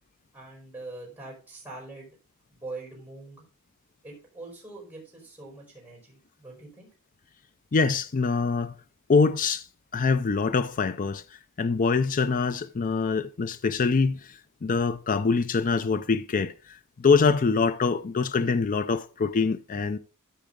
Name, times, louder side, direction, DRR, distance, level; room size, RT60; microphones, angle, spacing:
voice 1, 0.3-2.2 2.5-3.4 4.0-6.9, right 2 dB, 10° right, 4.1 m, -43 dB
voice 2, 7.7-8.7 9.1-9.6 9.9-11.2 11.6-14.2 14.6-16.5 17.0-20.0, left 4 dB, 35° left, 0.5 m, -24 dB
13.5 x 4.8 x 3.7 m
head